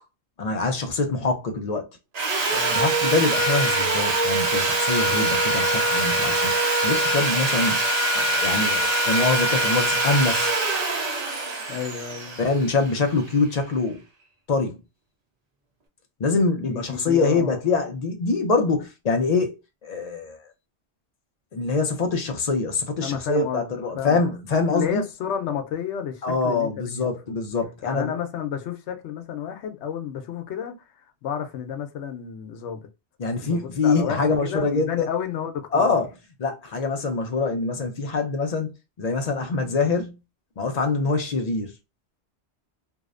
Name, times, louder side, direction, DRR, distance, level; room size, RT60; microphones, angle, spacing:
voice 1, 0.4-1.9 2.7-6.6 6.8-7.8 8.1-10.5 12.4-14.0 14.5-14.8 16.2-19.6 19.8-20.4 21.5-25.0 26.2-28.1 33.2-35.1 35.7-36.1 36.4-38.7 39.0-40.2 40.6-41.7, left 3 dB, 50° left, 0.5 m, -24 dB
Sawing, 2.1-13.2, right 2 dB, 50° right, 0.5 m, -23 dB
voice 2, 2.5-2.9 11.7-12.5 16.5-17.6 23.0-24.3 24.7-26.7 27.0-27.1 27.8-30.7 31.2-32.8 33.2-36.0, left 8 dB, 80° left, 0.9 m, -31 dB
2.6 x 2.1 x 2.3 m
omnidirectional pair, 1.2 m